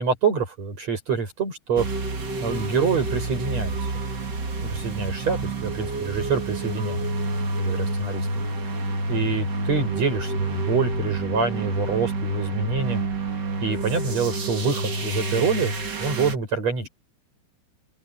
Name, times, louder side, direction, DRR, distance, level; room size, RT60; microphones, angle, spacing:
voice 1, 0.0-1.9 2.4-3.8 4.6-7.0 7.6-8.3 9.1-13.0 13.6-15.7 16.0-16.9, right 5 dB, 35° right, 7.5 m, -26 dB
sound 1, 1.8-16.4, right 2 dB, 80° right, 0.9 m, -28 dB
open air
omnidirectional pair, 5.5 m